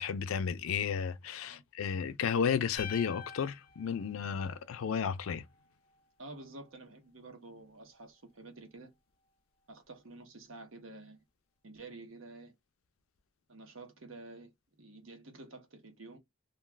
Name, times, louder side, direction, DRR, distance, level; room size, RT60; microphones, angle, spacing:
voice 1, 0.0-5.4, left 7 dB, 90° left, 0.4 m, -33 dB
sound 1, 2.8-5.0, left 8 dB, 25° left, 0.5 m, -47 dB
voice 2, 6.2-8.9 9.7-11.2 11.6-12.5 13.5-14.5 14.8-16.2, right 2 dB, 80° right, 0.9 m, -50 dB
2.3 x 2.3 x 3.2 m
head